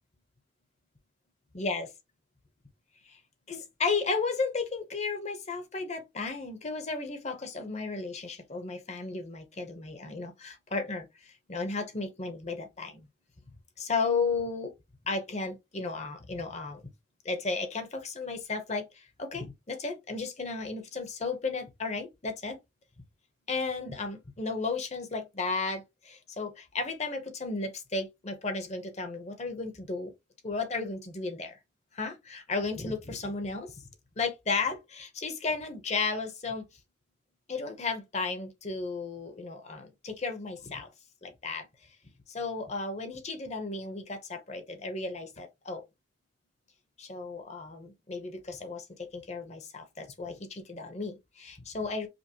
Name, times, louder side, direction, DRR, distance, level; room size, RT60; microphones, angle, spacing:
voice 1, 1.5-1.9 3.1-3.2 3.5-13.1 13.8-14.7 15.1-16.8 17.2-22.6 23.5-30.1 30.4-31.6 31.9-33.8 34.2-36.7 37.5-40.9 41.2-41.7 42.3-45.8 47.0-52.1, left 4 dB, 35° left, 0.8 m, -34 dB
5.2 x 2.0 x 2.8 m
head